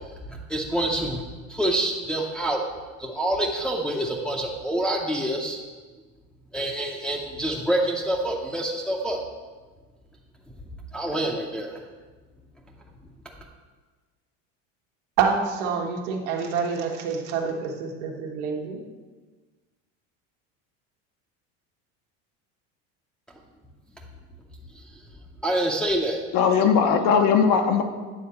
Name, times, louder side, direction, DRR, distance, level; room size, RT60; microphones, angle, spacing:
voice 1, 0.5-1.2 1.5-2.6 3.0-5.6 6.5-9.2 10.9-11.7 25.4-26.2, right 1 dB, ahead, -3 dB, 0.7 m, -26 dB
voice 2, 15.2-18.8, right 6 dB, 85° right, 2 dB, 1.4 m, -27 dB
voice 3, 26.3-27.8, left 6 dB, 65° left, 5 dB, 1.0 m, -19 dB
9.4 x 3.9 x 6.9 m, 1.4 s
cardioid pair, 130°, 35 cm